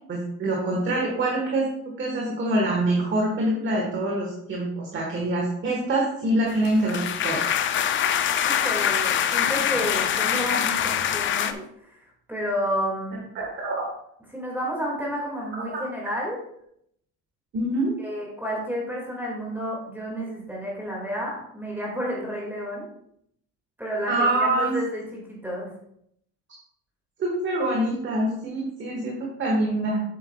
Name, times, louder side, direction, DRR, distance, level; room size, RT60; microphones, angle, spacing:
voice 1, 0.1-1.7 2.0-7.5 13.3-13.9 15.7-15.8 17.5-18.0 24.1-24.8 27.2-30.0, right 1 dB, 30° right, -2 dB, 1.4 m, -25 dB
sound 1, 6.5-11.5, left 9 dB, 35° left, 0.4 m, -24 dB
voice 2, 8.4-13.2 14.3-16.4 18.0-22.9 23.8-25.7, equal, 5° right, -3 dB, 2.0 m, -31 dB
8.3 x 7.9 x 2.3 m, 0.71 s
cardioid pair, 160°, 37 cm